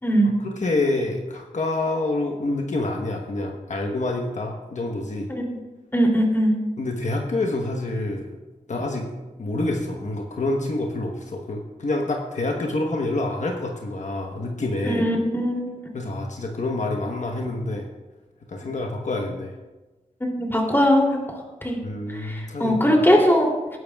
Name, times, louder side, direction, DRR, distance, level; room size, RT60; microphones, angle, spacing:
voice 1, 0.2-5.3 6.8-8.3 8.7-9.1 9.4-15.0 15.9-17.9 18.5-19.5 21.8-22.8, left 2 dB, 65° left, 1 dB, 1.2 m, -27 dB
voice 2, 5.9-6.5 14.8-15.9 20.2-21.1 21.6-21.8 22.1-23.5, equal, 15° left, -1 dB, 2.9 m, -20 dB
19.0 x 11.0 x 2.4 m, 1.2 s
wide cardioid pair, 90°, 13 cm